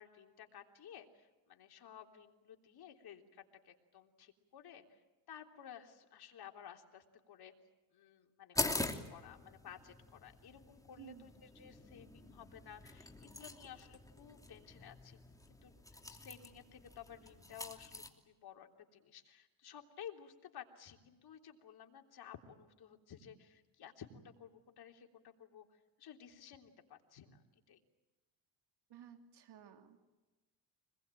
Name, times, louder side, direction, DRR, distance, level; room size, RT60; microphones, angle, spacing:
voice 1, 0.0-5.0 5.3-7.5 7.9-15.2 15.6-27.4 27.7-27.8, left 9 dB, 50° left, 4 dB, 3.5 m, -55 dB
sound 1, 8.5-18.1, left 2 dB, 5° left, 2.8 m, -44 dB
voice 2, 11.0-11.3 28.9-30.0, right 10 dB, 55° right, 6 dB, 3.0 m, -55 dB
25.5 x 21.0 x 9.1 m, 1.1 s
cardioid pair, 100°, 47 cm